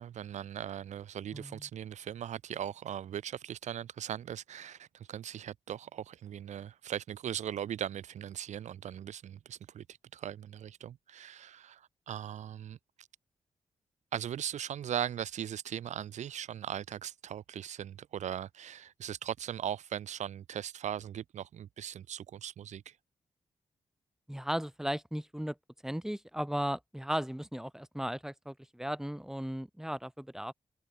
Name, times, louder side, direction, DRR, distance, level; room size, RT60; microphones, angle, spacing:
voice 1, 0.0-12.8 14.1-22.9, right 10 dB, 85° right, 3.8 m, -39 dB
voice 2, 1.3-1.6 24.3-25.6 25.8-30.5, equal, 5° right, 5.1 m, -36 dB
cardioid pair, 55°, 12 cm